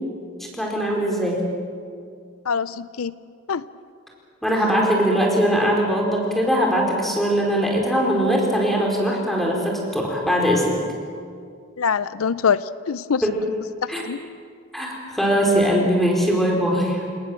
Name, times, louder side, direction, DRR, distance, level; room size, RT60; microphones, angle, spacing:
voice 1, 0.5-1.5 4.4-10.7 13.2-13.3 13.9-14.0 14.7-17.0, equal, ahead, -1 dB, 4.5 m, -21 dB
voice 2, 2.5-3.1 3.5-3.6 11.8-13.2 13.8-14.2, left 6 dB, 85° left, 16 dB, 0.5 m, -24 dB
29.0 x 18.5 x 7.5 m, 2.2 s
head